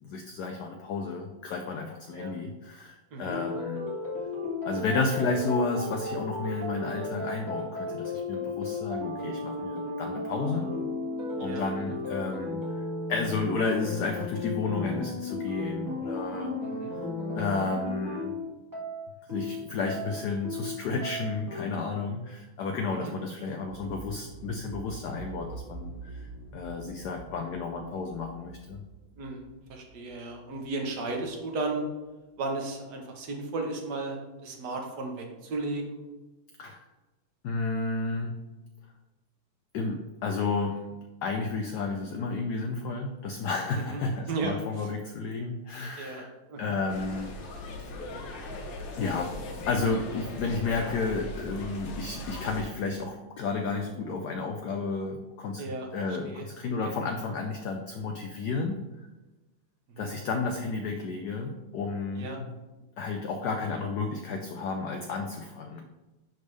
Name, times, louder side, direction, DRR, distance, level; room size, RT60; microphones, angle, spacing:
voice 1, 0.0-3.9 4.6-10.7 11.4-16.5 17.4-18.3 19.3-28.8 36.6-36.8 37.4-38.4 39.7-40.9 41.2-46.3 46.6-47.3 47.8-47.9 49.0-49.4 49.7-55.6 55.9-58.8 60.0-62.5 63.0-65.8, left 4 dB, 85° left, 4 dB, 0.9 m, -32 dB
sound 1, 3.3-21.6, left 2 dB, 10° right, 1.1 m, -34 dB
voice 2, 11.4-12.0 16.6-16.9 23.0-23.1 29.2-31.8 32.4-36.0 43.8-44.0 44.3-44.9 46.0-46.2 46.5-46.8 55.6-56.5 56.8-56.9 57.3-57.4 59.9-60.1 62.1-62.4, right 3 dB, 55° right, 2 dB, 1.5 m, -35 dB
sound 2, 23.6-31.4 31.7-31.8, right 3 dB, 40° right, 1.1 m, -45 dB
sound 3, 46.9-52.6, left 1 dB, 65° left, 1.5 m, -39 dB
10.5 x 3.5 x 3.3 m, 1.1 s
omnidirectional pair, 2.3 m